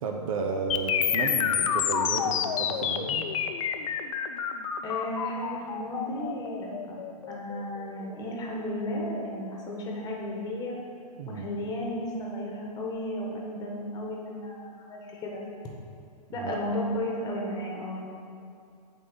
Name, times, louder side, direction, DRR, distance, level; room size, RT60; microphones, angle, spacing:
voice 1, 0.0-3.3 11.2-11.5 16.4-16.6, right 4 dB, 60° right, 2 dB, 0.8 m, -33 dB
sound 1, 0.7-8.7, left 8 dB, 55° left, 0.6 m, -29 dB
voice 2, 4.8-7.0 7.3-10.8 11.3-15.4 16.3-18.1, left 1 dB, 20° left, -2 dB, 1.3 m, -34 dB
7.7 x 4.0 x 6.8 m, 2.4 s
hypercardioid pair, 140°, 20 cm